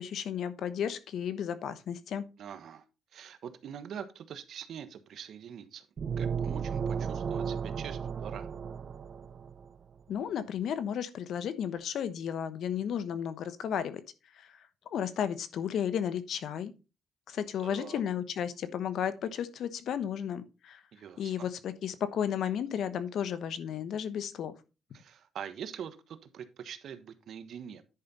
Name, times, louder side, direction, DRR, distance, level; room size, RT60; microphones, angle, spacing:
voice 1, 0.0-2.2 10.1-14.0 14.4-14.5 14.9-16.7 17.3-20.8 21.2-24.5, left 8 dB, 70° left, 1.0 m, -33 dB
voice 2, 2.4-2.8 3.1-5.9 6.2-8.5 17.6-18.0 20.9-21.5 24.9-27.8, right 8 dB, 65° right, 1.1 m, -44 dB
sound 1, 6.0-9.7, right 6 dB, 50° right, 0.7 m, -34 dB
10.5 x 5.2 x 4.2 m
cardioid pair, 90°, 0 cm